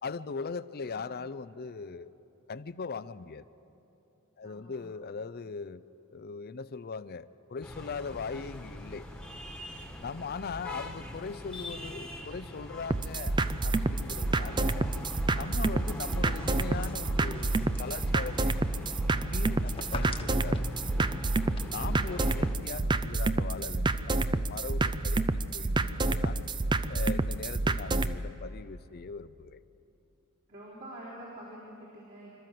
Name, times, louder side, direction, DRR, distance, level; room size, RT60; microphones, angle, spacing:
voice 1, 0.0-2.1 2.5-3.5 4.4-5.8 6.1-9.1 10.0-13.4 13.6-14.9 15.3-18.6 19.1-20.7 21.6-26.4 26.9-29.6, left 5 dB, 45° left, 16 dB, 0.5 m, -40 dB
voice 2, 0.8-1.1 4.4-4.9 10.1-10.6 30.5-32.3, right 1 dB, 55° right, -9 dB, 4.1 m, -47 dB
sound 1, 7.6-22.6, left 1 dB, 5° left, 1.5 m, -42 dB
sound 2, 12.9-28.1, right 2 dB, 20° right, 0.4 m, -29 dB
sound 3, 14.9-21.6, left 3 dB, 25° left, 1.2 m, -48 dB
27.5 x 13.0 x 7.7 m, 3.0 s
head